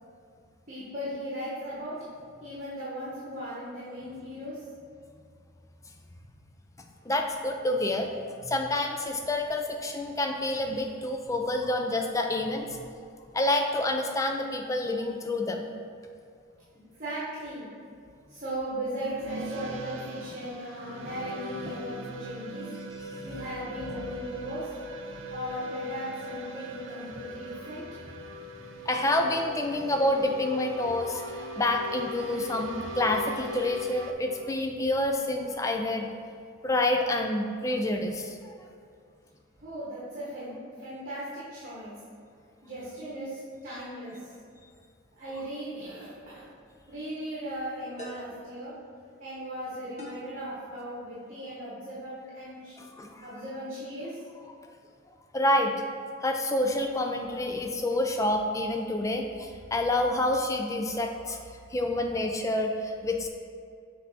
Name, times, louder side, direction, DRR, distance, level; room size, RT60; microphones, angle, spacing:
voice 1, 0.7-2.0 2.4-4.6 16.7-17.7 18.3-22.7 23.2-24.7 25.3-27.8 39.6-41.9 42.6-44.3 45.2-46.4 46.9-48.7 49.2-52.7 53.2-54.2, right 1 dB, 40° right, -9 dB, 1.2 m, -37 dB
voice 2, 7.1-8.1 8.4-12.7 13.3-15.7 28.9-36.2 36.6-38.5 52.8-53.3 55.3-55.7 56.2-61.4 61.7-63.3, left 1 dB, 15° left, 3 dB, 0.4 m, -28 dB
sound 1, 19.0-34.1, equal, 65° right, 0.5 m, -40 dB
sound 2, 46.4-46.6 48.0-48.4 50.0-50.4, equal, 35° left, 1.0 m, -43 dB
6.7 x 3.4 x 4.2 m, 2.3 s
head